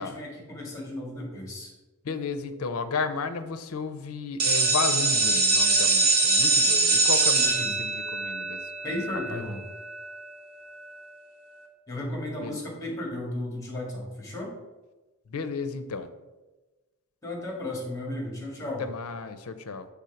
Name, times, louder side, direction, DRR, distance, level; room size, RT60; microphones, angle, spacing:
voice 1, 0.0-1.7 7.4-7.7 8.8-9.6 11.9-14.5 17.2-18.8, left 1 dB, 15° left, -1 dB, 1.9 m, -34 dB
voice 2, 2.0-8.6 8.9-9.0 9.3-9.4 12.4-12.6 15.3-16.1 18.8-19.9, left 4 dB, 70° left, 10 dB, 0.6 m, -33 dB
sound 1, 4.4-10.0, right 3 dB, 90° right, 1.2 m, -23 dB
6.3 x 3.5 x 5.7 m, 1.2 s
head